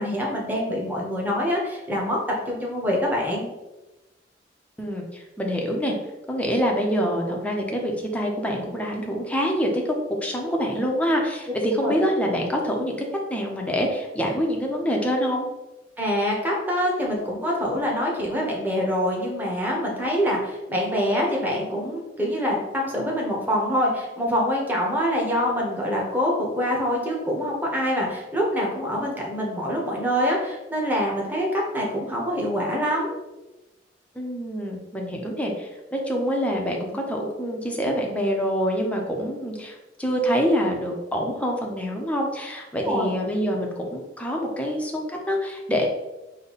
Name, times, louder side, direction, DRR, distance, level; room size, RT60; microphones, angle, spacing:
voice 1, 0.0-3.5 11.8-12.0 16.0-33.2 42.8-43.1, equal, 10° right, -3 dB, 1.0 m, -25 dB
voice 2, 4.8-5.9 6.3-10.0 10.2-15.5 34.1-45.9, equal, 10° left, 0 dB, 0.7 m, -26 dB
5.3 x 2.2 x 4.0 m, 1.0 s
head